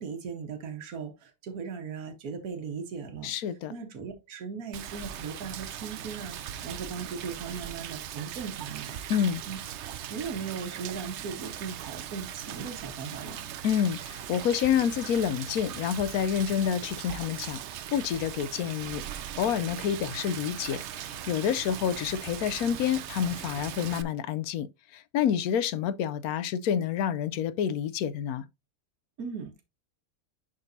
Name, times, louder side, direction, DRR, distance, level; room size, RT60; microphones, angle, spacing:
voice 1, 0.0-3.3 3.7-9.0 9.5-9.6 10.1-13.5 29.2-29.6, right 5 dB, 80° right, 1.6 m, -38 dB
voice 2, 3.2-3.7 9.1-9.4 13.6-17.6 17.9-19.0 19.4-24.7 24.9-28.5, left 9 dB, 80° left, 1.1 m, -28 dB
Rain, 4.7-24.0, right 10 dB, 65° right, 0.8 m, -39 dB
11.0 x 3.9 x 2.6 m
omnidirectional pair, 1.5 m